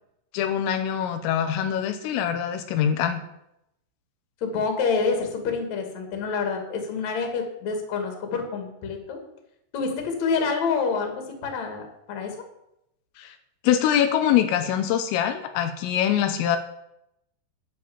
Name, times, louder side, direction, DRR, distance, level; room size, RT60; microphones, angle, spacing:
voice 1, 0.3-3.2 13.2-13.4 13.6-16.6, left 9 dB, 85° left, 7 dB, 3.6 m, -24 dB
voice 2, 4.4-9.2 9.7-12.3, left 5 dB, 45° left, 3 dB, 3.0 m, -27 dB
10.5 x 10.0 x 7.2 m, 0.81 s
omnidirectional pair, 5.8 m